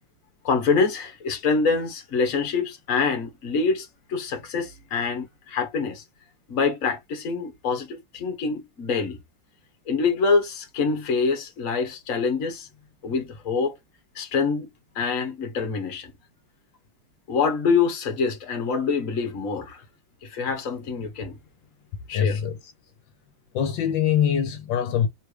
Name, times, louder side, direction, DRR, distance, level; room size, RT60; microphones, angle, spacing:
voice 1, 0.4-6.0 6.5-9.2 9.9-12.7 13.0-13.7 14.1-14.7 14.9-16.1 17.3-19.8 20.2-21.4 22.1-22.4, left 5 dB, 45° left, 1.5 m, -25 dB
voice 2, 22.1-22.6 23.5-25.1, left 8 dB, 80° left, 1.5 m, -23 dB
3.4 x 3.3 x 4.7 m
omnidirectional pair, 2.0 m